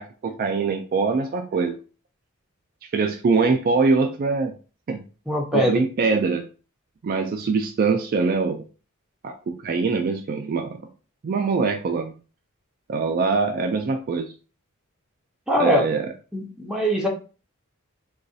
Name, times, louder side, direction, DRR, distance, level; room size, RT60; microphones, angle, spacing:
voice 1, 0.0-1.8 2.9-4.5 4.9-5.0 5.5-6.5 7.0-8.7 9.2-10.8 11.2-12.1 12.9-14.3 15.6-16.1, right 4 dB, 45° right, 5 dB, 0.3 m, -23 dB
voice 2, 5.3-5.9 15.5-15.9 16.3-17.1, equal, 5° right, -1 dB, 0.7 m, -22 dB
3.9 x 2.3 x 2.6 m, 0.36 s
head